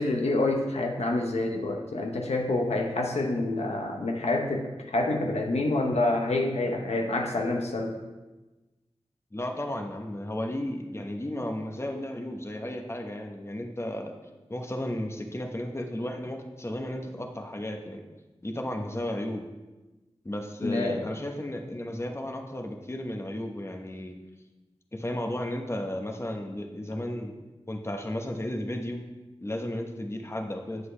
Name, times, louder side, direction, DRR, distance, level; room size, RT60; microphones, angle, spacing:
voice 1, 0.0-8.0 20.6-21.1, left 2 dB, 85° left, 2 dB, 0.8 m, -27 dB
voice 2, 9.3-14.1 14.5-18.1 18.4-19.5 20.2-24.1 24.9-27.3 27.7-29.0 29.4-30.9, left 1 dB, 25° left, 3 dB, 1.0 m, -34 dB
7.9 x 7.7 x 3.3 m, 1.1 s
cardioid pair, 45°, 11 cm